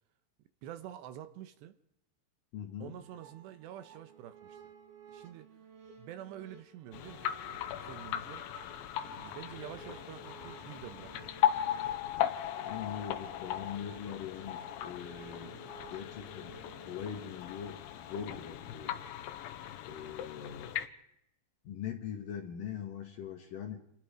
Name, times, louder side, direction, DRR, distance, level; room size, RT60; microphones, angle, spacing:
voice 1, 0.4-1.7 2.8-4.7 5.1-5.6 6.0-8.5 9.0-11.4 15.4-15.7 20.0-20.1, right 11 dB, 75° right, 9 dB, 3.1 m, -48 dB
voice 2, 2.5-3.0 12.7-15.6 15.9-19.0 19.8-20.7 21.6-23.8, left 8 dB, 60° left, 4 dB, 2.6 m, -42 dB
sound 1, 2.9-17.2, right 7 dB, 60° right, 4.4 m, -56 dB
sound 2, 6.9-20.9, left 11 dB, 85° left, 3.4 m, -37 dB
28.0 x 20.0 x 5.1 m, 0.81 s
omnidirectional pair, 5.2 m